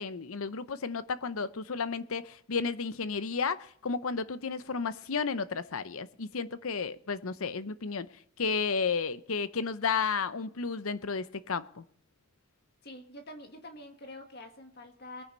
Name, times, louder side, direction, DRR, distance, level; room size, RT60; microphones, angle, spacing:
voice 1, 0.0-8.1 8.4-11.8, left 5 dB, 75° left, 14 dB, 0.7 m, -32 dB
voice 2, 12.8-15.2, left 1 dB, 50° left, 4 dB, 1.9 m, -46 dB
21.5 x 9.8 x 4.0 m, 0.63 s
head